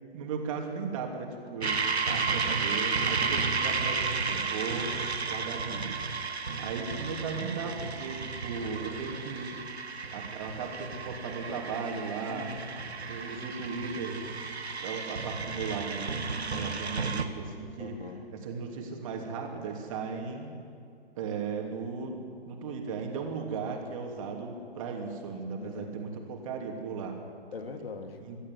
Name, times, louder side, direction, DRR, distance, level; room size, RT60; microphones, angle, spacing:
voice 1, 0.1-4.9 5.2-6.3 6.6-9.6 10.1-12.5 13.1-14.2 14.8-18.0 18.3-20.5 21.2-22.2 22.5-27.1 28.3-28.4, right 5 dB, 30° right, 2 dB, 3.0 m, -36 dB
sound 1, 1.6-17.2, right 4 dB, 90° right, 1.7 m, -33 dB
voice 2, 12.2-13.2 17.8-18.3 25.6-26.0 27.5-28.3, left 4 dB, 65° left, 5 dB, 2.6 m, -42 dB
21.0 x 13.0 x 9.8 m, 2.3 s
hypercardioid pair, 150°, 31 cm